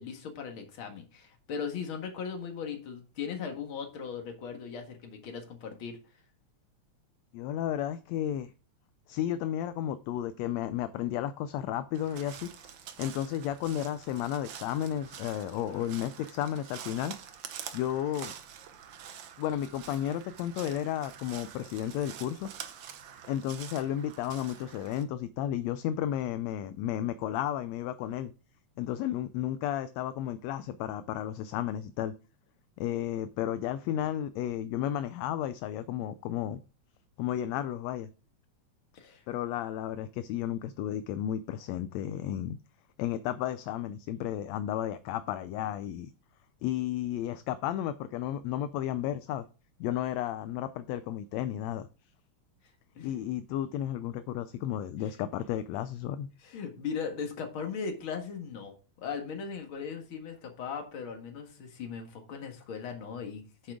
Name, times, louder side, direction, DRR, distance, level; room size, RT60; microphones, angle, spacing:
voice 1, 0.0-6.0 38.9-39.2 53.0-53.1 56.4-58.7 59.0-63.7, left 6 dB, 50° left, 2.2 m, -38 dB
voice 2, 7.3-8.5 9.1-12.7 13.0-17.1 17.7-18.3 19.4-22.5 23.3-28.3 28.8-32.1 32.8-36.6 37.2-38.1 39.3-42.6 43.0-46.1 46.6-49.5 49.8-51.9 53.0-56.3, left 11 dB, 80° left, 1.7 m, -33 dB
Crow, 11.9-25.0, right 8 dB, 75° right, 1.0 m, -46 dB
8.6 x 7.5 x 3.6 m
omnidirectional pair, 3.3 m